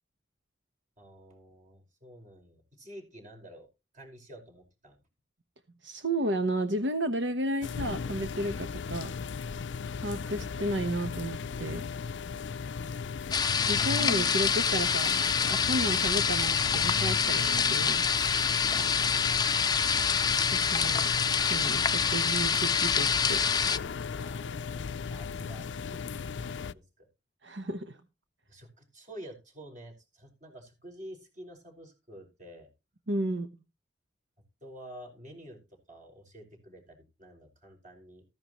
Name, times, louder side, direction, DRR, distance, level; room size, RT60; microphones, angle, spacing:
voice 1, 1.0-3.7 3.9-5.0 24.2-27.1 28.5-32.7 34.6-35.6 35.9-38.2, right 1 dB, 45° right, 3 dB, 5.3 m, -49 dB
voice 2, 5.8-9.1 9.9-11.8 13.7-15.1 15.5-18.1 20.5-21.1 21.5-23.4 27.4-28.0 33.1-33.5, right 1 dB, 75° right, 8 dB, 1.1 m, -32 dB
sound 1, 7.6-26.7, left 5 dB, 75° left, 0.5 m, -36 dB
sound 2, 13.3-23.8, left 6 dB, 20° left, 0.6 m, -26 dB
14.5 x 11.0 x 3.0 m, 0.29 s
head